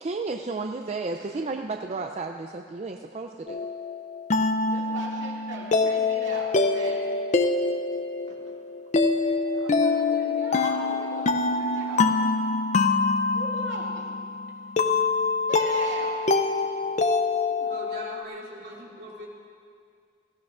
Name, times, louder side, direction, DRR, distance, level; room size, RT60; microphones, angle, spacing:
voice 1, 0.0-3.6, right 3 dB, 35° right, 4 dB, 0.4 m, -32 dB
sound 1, 3.5-18.2, left 3 dB, 40° left, 0.5 m, -25 dB
voice 2, 4.6-7.1 8.2-8.6 8.9-12.3 13.3-14.1 15.5-17.2 17.5-17.7 18.8-19.0, right 2 dB, 75° right, -3 dB, 2.3 m, -40 dB
voice 3, 17.7-19.3, right 1 dB, 55° right, -5 dB, 2.6 m, -40 dB
18.0 x 16.0 x 2.5 m, 2.2 s
head